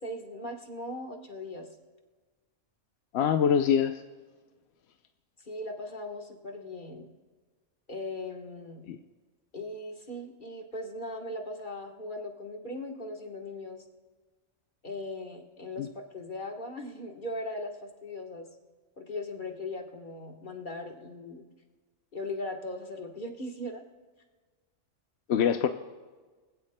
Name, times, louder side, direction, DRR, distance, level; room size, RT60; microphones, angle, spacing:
voice 1, 0.0-1.7 5.4-7.1 7.9-8.8 9.5-13.8 14.8-18.5 19.0-21.4 22.1-23.9, left 1 dB, 40° left, 2 dB, 1.4 m, -39 dB
voice 2, 3.1-4.0 8.8-9.0 15.8-15.9 25.3-25.7, left 8 dB, 65° left, 7 dB, 0.8 m, -24 dB
23.5 x 16.0 x 2.2 m, 1.4 s
omnidirectional pair, 1.3 m